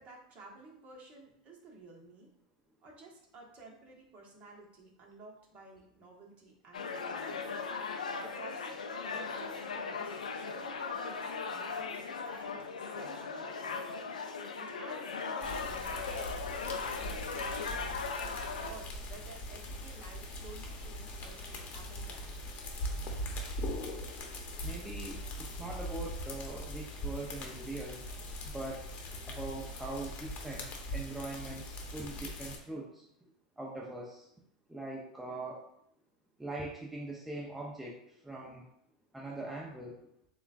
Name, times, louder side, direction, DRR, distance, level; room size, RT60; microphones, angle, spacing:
voice 1, 0.0-2.3 2.8-7.4 7.7-8.7 9.0-13.8 14.6-18.0 18.6-22.7, right 2 dB, 35° right, -1 dB, 1.3 m, -53 dB
sound 1, 6.7-18.7, left 5 dB, 85° left, 0.5 m, -38 dB
sound 2, 15.4-32.6, equal, 35° left, 1.0 m, -41 dB
voice 2, 22.9-23.2 24.6-28.0 28.4-28.9 29.2-33.0 33.6-34.3 34.7-35.6 36.4-38.0 38.2-38.7 39.1-39.9, right 2 dB, 5° right, -4 dB, 0.8 m, -42 dB
6.8 x 2.3 x 2.5 m, 0.73 s
hypercardioid pair, 95°, 4 cm